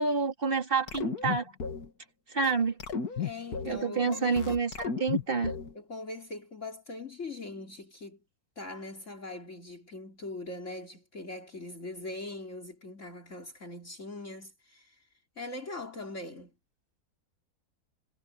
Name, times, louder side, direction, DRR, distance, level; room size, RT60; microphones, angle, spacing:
voice 1, 0.0-1.5 2.3-2.7 3.7-5.5, right 4 dB, 35° right, 3.0 m, -28 dB
sound 1, 0.9-1.9 2.4-2.5 2.8-3.8 4.1-5.7, left 5 dB, 75° left, 2.4 m, -34 dB
voice 2, 3.2-4.6 5.7-8.2 8.6-15.0 15.4-16.5, left 2 dB, 50° left, 3.8 m, -41 dB
omnidirectional pair, 1.6 m